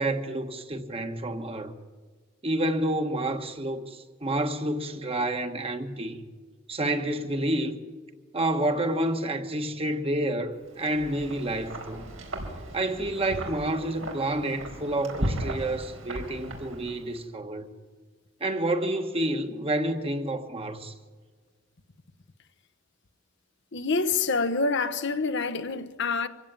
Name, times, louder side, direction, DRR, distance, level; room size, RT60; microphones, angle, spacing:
voice 1, 0.0-1.7 2.4-6.2 6.7-7.8 8.3-12.0 12.7-17.7 18.4-20.9, right 1 dB, 30° right, 1.5 m, -29 dB
Wind, 10.7-17.2, right 1 dB, 90° right, 4.5 m, -36 dB
voice 2, 23.7-26.3, left 4 dB, 60° left, 1.0 m, -27 dB
24.5 x 16.0 x 9.0 m
head